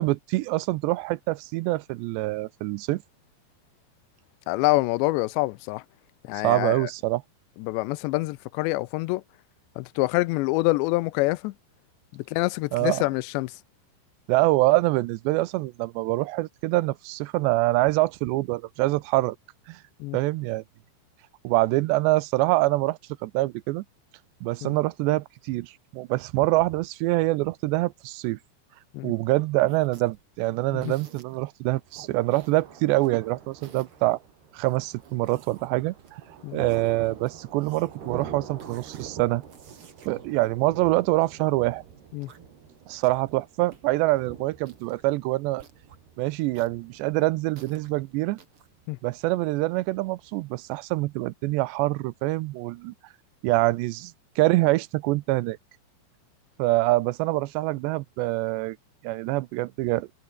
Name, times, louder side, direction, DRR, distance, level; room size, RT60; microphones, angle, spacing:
voice 1, 0.0-3.0 6.4-7.2 12.7-13.0 14.3-19.4 19.7-19.8 20.1-20.6 21.4-23.8 24.4-28.4 29.0-34.2 34.5-36.2 36.5-39.4 40.1-41.8 42.9-45.6 46.2-48.4 49.0-52.9 53.4-55.6 56.6-58.8 59.0-60.1, right 20 dB, 80° right, 2.9 m, -25 dB
voice 2, 4.5-5.8 6.2-6.9 7.6-9.2 9.8-11.5 12.1-13.5 20.0-20.2 24.6-24.8 28.9-29.1 30.7-30.9 36.4-36.6 42.1-42.3 48.9-49.0, left 21 dB, 85° left, 2.9 m, -26 dB
sound 1, 29.7-30.3 30.8-31.4 31.9-33.1 33.5-34.1 34.6-36.2 36.5-37.3 37.6-38.3 38.6-39.1 39.4-41.4 42.1-42.6 43.0-43.5 43.7-43.8 44.1-44.3 44.6-45.1 45.6-46.0 46.5-47.9 48.4-48.7, right 7 dB, 45° right, 2.1 m, -52 dB
Thunder, 31.8-50.7, right 7 dB, 65° right, 5.8 m, -46 dB
omnidirectional pair, 5.0 m